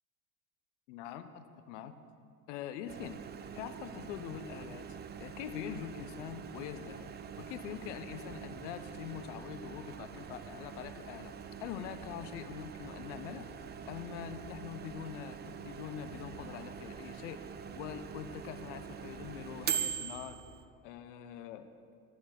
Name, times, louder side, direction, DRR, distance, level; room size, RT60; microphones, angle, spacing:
voice 1, 0.9-2.0 2.5-3.2 3.5-7.1 7.4-11.3 11.6-13.5 13.9-17.4 17.7-20.4 20.8-21.7, left 9 dB, 55° left, 10 dB, 0.9 m, -44 dB
Microwave oven, 2.9-20.6, right 8 dB, 25° right, 0.7 m, -43 dB
11.5 x 11.5 x 6.5 m, 2.4 s
figure-of-eight pair, 70°, 43 cm